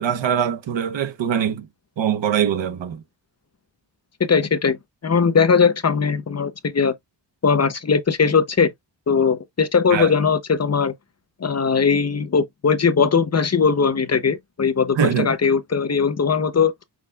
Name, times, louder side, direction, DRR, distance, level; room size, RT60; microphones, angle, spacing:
voice 1, 0.0-1.7 2.0-3.0 9.9-10.1 15.0-15.3, right 8 dB, 90° right, 0.8 m, -22 dB
voice 2, 4.2-4.8 5.0-6.9 7.4-8.7 9.1-10.9 11.4-16.7, left 5 dB, 35° left, 0.6 m, -19 dB
6.1 x 2.2 x 3.4 m
wide cardioid pair, 130°, 44 cm